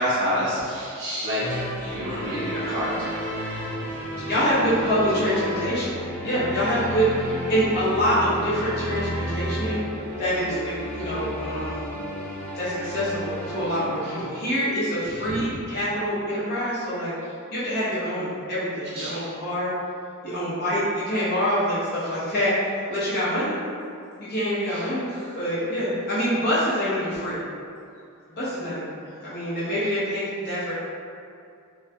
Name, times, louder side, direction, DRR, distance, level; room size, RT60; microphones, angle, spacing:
voice 1, 0.0-1.5 1.7-3.2 4.2-4.4 5.1-5.2 15.1-15.4 18.9-19.3 24.7-25.4 29.1-29.4, equal, 50° right, -10 dB, 0.5 m, -29 dB
sound 1, 1.4-14.2, equal, 5° left, 0.4 m, -32 dB
voice 2, 4.2-9.8 10.2-11.9 12.5-17.1 17.5-19.7 20.2-23.5 24.2-25.1 25.4-27.4 28.3-30.7, equal, 45° left, -11 dB, 0.7 m, -25 dB
sound 2, 8.2-8.6 10.6-11.6, equal, 90° right, 0.6 m, -43 dB
2.2 x 2.1 x 2.7 m, 2.4 s
head